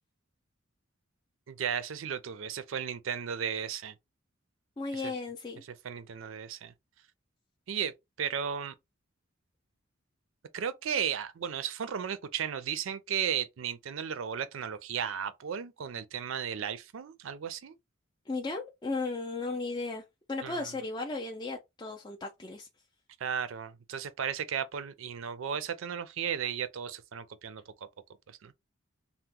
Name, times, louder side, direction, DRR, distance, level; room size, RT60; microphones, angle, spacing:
voice 1, 1.5-3.9 4.9-5.1 5.8-6.7 7.7-7.9 8.2-8.7 10.5-17.8 20.4-20.7 23.2-27.6 28.3-28.5, right 8 dB, 80° right, 0.4 m, -35 dB
voice 2, 4.8-5.6 18.3-22.7, left 3 dB, 20° left, 0.4 m, -35 dB
2.8 x 2.0 x 3.5 m
head